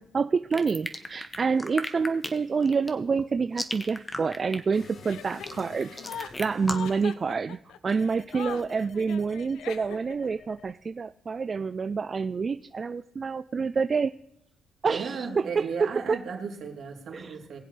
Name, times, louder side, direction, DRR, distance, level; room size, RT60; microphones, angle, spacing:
voice 1, 0.0-14.1 14.8-15.7 16.1-16.2 17.1-17.4, right 5 dB, 40° right, 11 dB, 0.3 m, -28 dB
sound 1, 0.5-7.0, left 1 dB, 15° left, 1.2 m, -35 dB
sound 2, 4.7-6.7 7.9-10.7, left 5 dB, 55° left, 1.3 m, -49 dB
Chuckle chortle, 5.0-10.3, left 9 dB, 85° left, 0.7 m, -41 dB
voice 2, 14.9-17.6, right 5 dB, 65° right, 0 dB, 3.3 m, -35 dB
21.0 x 7.6 x 3.3 m, 0.80 s
cardioid pair, 90°, 0 cm